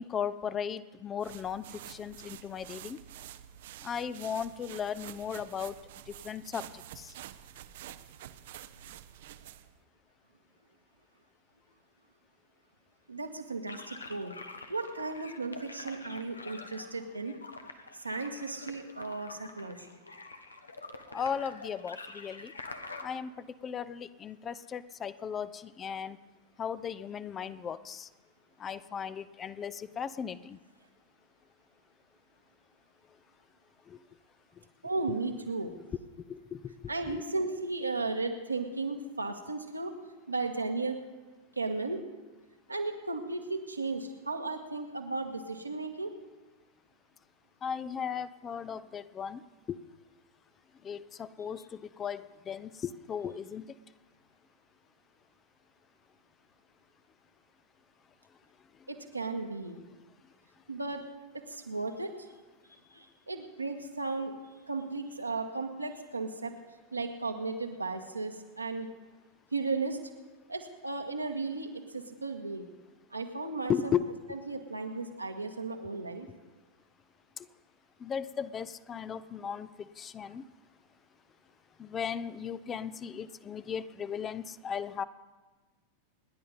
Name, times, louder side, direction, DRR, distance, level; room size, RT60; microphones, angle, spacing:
voice 1, 0.0-3.0 3.8-5.7 6.2-6.6 7.0-7.1 21.1-22.5 23.0-26.2 26.6-28.1 28.6-30.6 36.3-36.7 37.0-37.2 47.6-49.4 49.7-49.8 50.8-53.6 73.7-74.1 78.0-79.7 80.0-80.4 81.8-85.0, left 7 dB, 25° left, 16 dB, 0.6 m, -36 dB
sound 1, 1.2-9.8, right 12 dB, 55° right, 0.7 m, -48 dB
voice 2, 13.1-14.3 14.7-17.4 17.9-20.0 34.8-35.7 36.9-39.9 40.3-41.0 41.5-42.0 42.7-46.1 58.9-59.8 60.7-61.0 61.5-62.3 62.7-64.3 64.7-66.5 66.9-68.9 69.5-70.1 70.5-72.7 73.1-73.9 74.3-76.3, right 3 dB, 85° right, 4 dB, 1.5 m, -35 dB
sound 2, 13.7-23.1, left 3 dB, 75° left, 1.1 m, -46 dB
27.5 x 11.0 x 4.1 m, 1.3 s
figure-of-eight pair, 90°, 0 cm